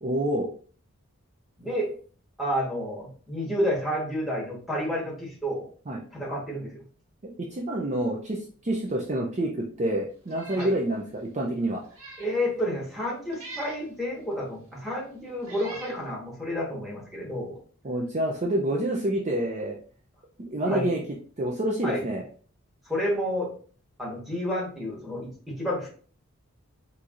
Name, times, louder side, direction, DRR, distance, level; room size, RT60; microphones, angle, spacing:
voice 1, 0.0-0.5 5.9-6.0 7.2-11.8 17.8-19.8 20.4-21.0 21.4-22.2, right 1 dB, 30° right, -1 dB, 0.4 m, -28 dB
voice 2, 1.6-1.9 2.4-5.7 6.1-6.8 10.6-10.7 12.2-17.6 20.6-20.9 21.8-22.0 22.9-23.5 24.0-25.9, equal, ahead, -5 dB, 1.2 m, -30 dB
Meow, 10.3-10.8 11.2-11.3 11.8-12.4 13.3-13.8 14.7-14.8 15.4-16.0, right 3 dB, 75° right, 1.3 m, -43 dB
4.4 x 2.6 x 2.4 m, 0.42 s
head